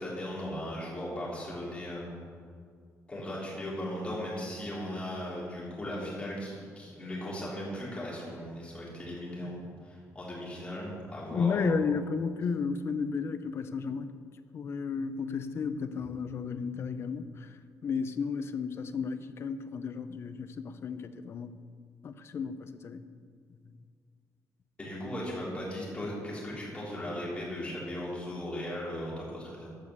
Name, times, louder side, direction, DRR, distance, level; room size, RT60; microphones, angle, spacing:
voice 1, 0.0-2.1 3.1-11.7 24.8-29.7, left 1 dB, 20° left, -6 dB, 3.1 m, -37 dB
voice 2, 11.3-14.1 14.5-17.5 17.8-21.5 22.0-23.0, left 5 dB, 45° left, 11 dB, 0.5 m, -33 dB
14.0 x 5.0 x 6.8 m, 2.1 s
cardioid pair, 170°, 6 cm